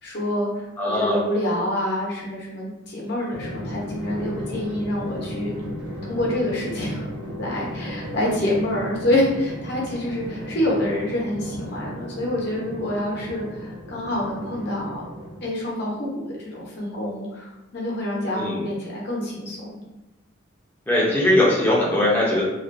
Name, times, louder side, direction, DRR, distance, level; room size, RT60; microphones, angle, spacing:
voice 1, 0.0-5.5 6.1-7.0 7.4-15.0 15.4-19.8, left 1 dB, 55° left, -4 dB, 0.7 m, -27 dB
voice 2, 0.8-1.2 18.3-18.6 20.9-22.4, left 1 dB, 10° left, -6 dB, 0.5 m, -20 dB
Drum, 3.3-15.7, equal, 90° right, 0.7 m, -35 dB
2.4 x 2.2 x 2.5 m, 0.99 s
head